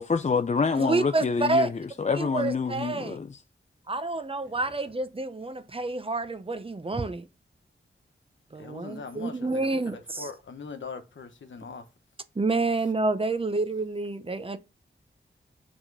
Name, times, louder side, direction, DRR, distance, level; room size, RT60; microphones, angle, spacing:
voice 1, 0.0-3.4, left 5 dB, 35° left, 0.5 m, -27 dB
voice 2, 0.7-1.7 2.2-3.2 3.9-7.3 8.5-10.3 12.4-14.6, right 3 dB, 30° right, 0.7 m, -28 dB
voice 3, 4.4-4.8 8.6-11.9, left 5 dB, 80° left, 1.2 m, -41 dB
7.2 x 3.7 x 5.4 m
wide cardioid pair, 85°, 19 cm